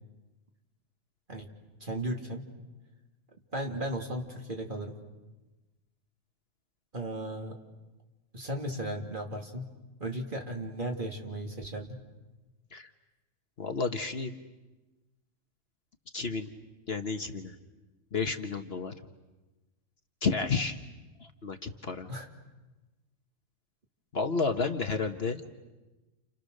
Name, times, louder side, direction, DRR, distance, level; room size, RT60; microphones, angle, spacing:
voice 1, 1.8-2.4 3.5-5.0 6.9-7.6 8.3-9.7 10.0-12.0 22.1-22.3, right 1 dB, 35° right, 1 dB, 2.9 m, -35 dB
voice 2, 13.6-14.3 16.1-16.5 16.9-17.5 18.1-18.9 20.2-20.8 21.2-22.1 24.1-25.4, left 4 dB, 50° left, 6 dB, 1.3 m, -31 dB
30.0 x 30.0 x 6.6 m, 1.1 s
omnidirectional pair, 1.4 m